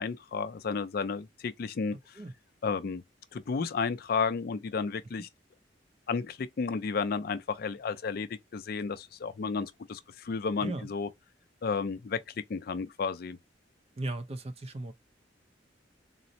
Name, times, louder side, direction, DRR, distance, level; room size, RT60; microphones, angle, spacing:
voice 1, 0.0-2.0 2.6-3.0 3.3-5.3 6.1-11.1 11.6-12.2 12.5-13.4, left 5 dB, 55° left, 0.4 m, -32 dB
voice 2, 10.6-10.9 14.0-14.9, right 2 dB, 35° right, 0.5 m, -36 dB
3.8 x 2.0 x 2.6 m
head